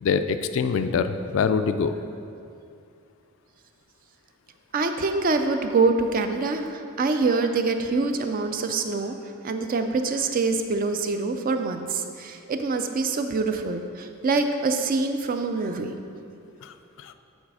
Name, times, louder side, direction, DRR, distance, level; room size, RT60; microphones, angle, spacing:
voice 1, 0.0-1.9 16.6-17.1, left 5 dB, 60° left, 9 dB, 0.3 m, -25 dB
voice 2, 4.7-9.1 9.4-16.0, right 3 dB, 40° right, 7 dB, 0.4 m, -25 dB
7.2 x 4.0 x 4.8 m, 2.5 s
head